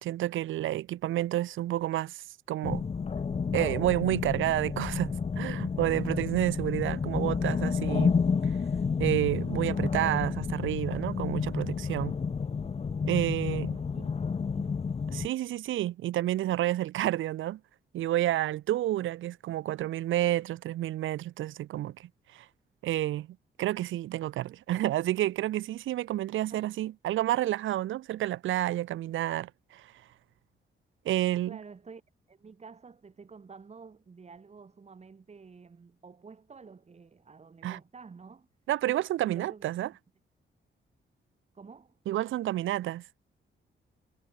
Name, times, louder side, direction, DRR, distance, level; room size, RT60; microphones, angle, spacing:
voice 1, 0.0-2.8 3.5-8.1 9.0-12.1 13.1-13.8 15.1-17.6 17.9-22.5 22.8-23.3 23.6-29.9 31.1-31.6 37.6-37.8 38.7-39.9 42.1-43.0, right 14 dB, 85° right, 0.5 m, -30 dB
sound 1, 2.6-15.3, left 5 dB, 30° left, 0.9 m, -30 dB
voice 2, 13.4-14.7 26.5-26.7 31.4-32.0 32.3-38.5 39.0-39.8 41.5-42.0, right 5 dB, 35° right, 2.5 m, -50 dB
wide cardioid pair, 130°, 20 cm